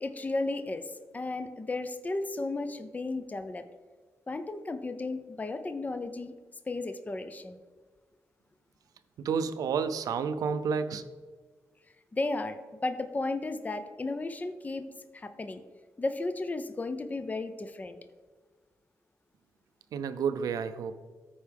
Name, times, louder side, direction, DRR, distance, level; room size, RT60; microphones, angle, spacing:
voice 1, 0.0-3.6 4.3-6.3 6.7-7.6 12.1-14.9 15.1-15.6 16.0-18.0, left 2 dB, 25° left, 9 dB, 0.6 m, -34 dB
voice 2, 9.2-11.1 19.9-20.9, right 6 dB, 85° right, 11 dB, 0.5 m, -30 dB
13.5 x 4.7 x 3.5 m, 1.5 s
cardioid pair, 75°, 6 cm